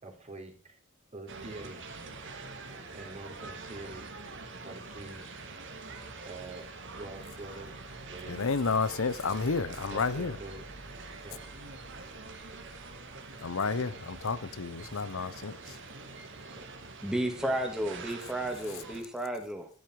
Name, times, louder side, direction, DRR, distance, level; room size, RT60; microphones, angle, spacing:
voice 1, 0.0-0.8 1.1-1.8 2.9-4.1 4.6-5.3 6.2-8.5 9.9-10.7 11.2-11.5 17.3-17.5, right 2 dB, 30° right, 3.8 m, -45 dB
sound 1, 1.3-19.0, right 3 dB, 60° right, 2.4 m, -45 dB
voice 2, 8.3-10.4 13.4-15.8, left 4 dB, 70° left, 0.8 m, -31 dB
voice 3, 17.0-19.7, right 1 dB, 5° right, 2.7 m, -32 dB
11.5 x 11.5 x 4.8 m
head